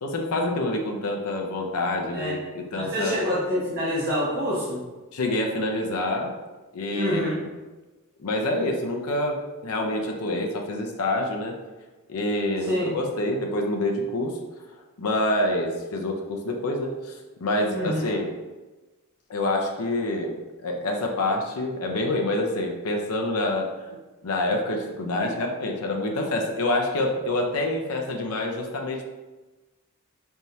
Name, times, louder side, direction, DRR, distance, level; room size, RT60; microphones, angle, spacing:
voice 1, 0.0-3.2 5.1-6.3 6.7-7.2 8.2-11.5 12.1-14.3 15.0-18.3 19.3-20.4 20.6-23.7 24.2-29.0, left 1 dB, 85° left, 1 dB, 0.6 m, -27 dB
voice 2, 2.7-4.8 6.9-7.4 12.7-12.9 17.7-18.0, equal, 45° right, -8 dB, 1.3 m, -26 dB
4.2 x 3.5 x 2.7 m, 1.2 s
head